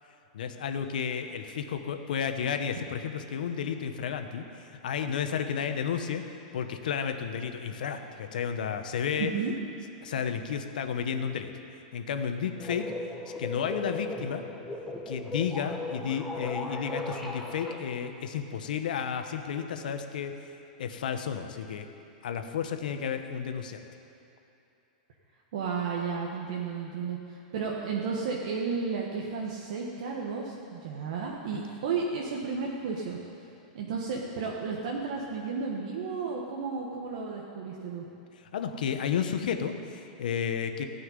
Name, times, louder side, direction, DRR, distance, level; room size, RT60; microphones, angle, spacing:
voice 1, 0.3-6.2 6.5-9.3 10.0-11.5 11.9-12.9 13.4-14.4 15.1-20.4 20.8-21.9 22.2-23.8 31.5-31.6 38.5-40.8, left 7 dB, 85° left, 7 dB, 1.1 m, -32 dB
voice 2, 9.1-9.5 25.5-33.2 33.7-38.0, right 5 dB, 60° right, -2 dB, 1.4 m, -33 dB
sound 1, 12.6-17.8, left 2 dB, ahead, 1.1 m, -37 dB
16.5 x 5.8 x 9.6 m, 2.8 s
supercardioid pair, 170°, 4 cm